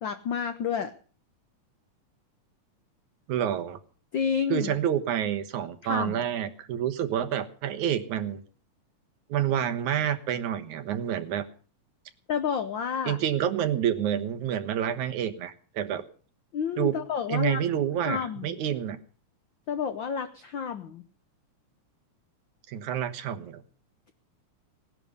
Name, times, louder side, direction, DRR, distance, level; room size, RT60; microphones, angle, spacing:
voice 1, 0.0-0.9 4.1-4.7 5.8-6.2 12.3-13.2 16.5-17.6 18.0-18.6 19.7-21.1, left 7 dB, 75° left, 10 dB, 1.0 m, -30 dB
voice 2, 3.3-3.8 4.5-8.4 9.3-11.4 13.1-16.0 16.8-16.9 17.3-19.0 22.7-23.6, right 10 dB, 75° right, 9 dB, 2.7 m, -28 dB
18.0 x 11.0 x 6.7 m, 0.41 s
omnidirectional pair, 3.4 m